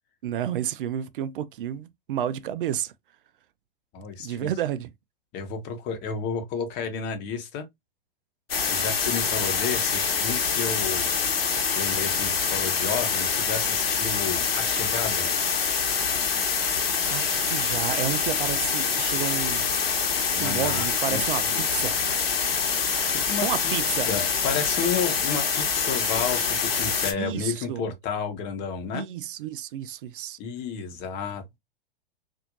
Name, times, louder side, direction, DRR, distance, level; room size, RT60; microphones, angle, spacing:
voice 1, 0.2-2.9 4.2-4.9 17.1-19.7 20.4-22.0 23.4-24.1 27.2-27.8 28.9-30.4, right 10 dB, 60° right, 0.5 m, -31 dB
voice 2, 3.9-4.5 5.3-7.7 8.7-11.1 11.7-15.3 20.3-21.6 23.0-23.5 24.1-29.1 30.4-31.6, left 6 dB, 35° left, 1.1 m, -31 dB
sound 1, 8.5-27.1, left 6 dB, 80° left, 1.1 m, -25 dB
4.2 x 2.7 x 2.5 m
hypercardioid pair, 105°, 30 cm